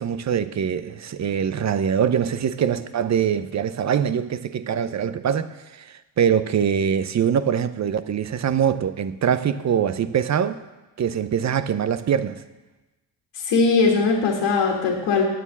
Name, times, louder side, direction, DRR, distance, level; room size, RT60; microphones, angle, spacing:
voice 1, 0.0-10.6 11.0-12.4, right 8 dB, 40° right, 0.7 m, -23 dB
voice 2, 13.3-15.2, left 4 dB, 85° left, 1.9 m, -20 dB
9.3 x 8.5 x 7.3 m
cardioid pair, 80°, 42 cm